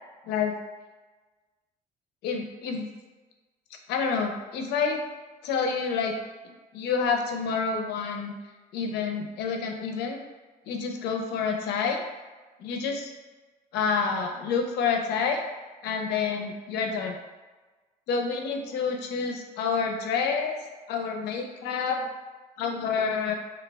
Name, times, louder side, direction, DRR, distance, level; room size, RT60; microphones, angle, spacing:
voice 1, 0.2-0.6 2.2-2.9 3.9-5.0 5.4-6.2 6.7-8.3 8.7-10.2 10.7-12.0 12.6-13.1 13.7-15.4 15.8-17.2 18.1-22.1 22.6-23.3, left 5 dB, 80° left, 3 dB, 0.4 m, -28 dB
2.2 x 2.1 x 3.3 m, 1.3 s
cardioid pair, 110°, 17 cm